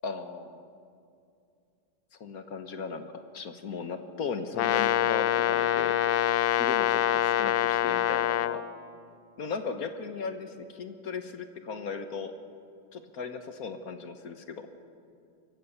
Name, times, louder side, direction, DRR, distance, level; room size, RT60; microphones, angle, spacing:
voice 1, 0.0-0.7 2.2-6.2 6.5-8.6 9.4-12.3 12.9-14.7, left 5 dB, 55° left, 8 dB, 1.4 m, -37 dB
Brass instrument, 4.5-8.6, left 12 dB, 85° left, 1.5 m, -25 dB
23.5 x 15.0 x 7.2 m, 2.4 s
omnidirectional pair, 2.1 m